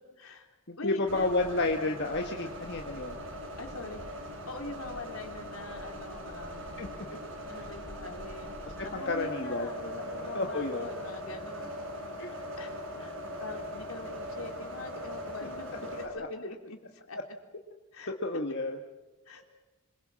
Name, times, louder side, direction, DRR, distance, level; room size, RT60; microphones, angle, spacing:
voice 1, 0.2-1.3 2.2-2.5 3.6-4.0 4.3-6.8 7.5-8.5 8.8-9.9 10.1-11.9 12.2-17.3 17.9-18.1 19.3-19.4, left 2 dB, 75° left, 3 dB, 3.6 m, -44 dB
voice 2, 0.7-3.2 6.8-7.1 8.9-10.0 10.3-10.9 12.2-12.3 18.2-18.8, left 2 dB, 55° left, 3 dB, 1.4 m, -31 dB
sound 1, 1.1-16.1, equal, 65° right, 6.2 m, -40 dB
26.5 x 22.5 x 7.5 m, 1.2 s
head